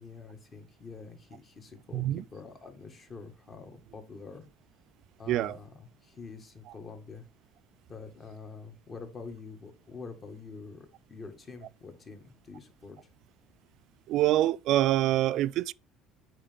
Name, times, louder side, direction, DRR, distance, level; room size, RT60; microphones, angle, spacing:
voice 1, 0.0-2.0 2.3-4.4 5.2-7.2 7.9-13.0, left 4 dB, 30° left, 2.1 m, -46 dB
voice 2, 1.9-2.2 5.3-5.6 14.1-15.7, right 14 dB, 60° right, 0.3 m, -25 dB
8.8 x 4.7 x 5.3 m
cardioid pair, 140°, 0 cm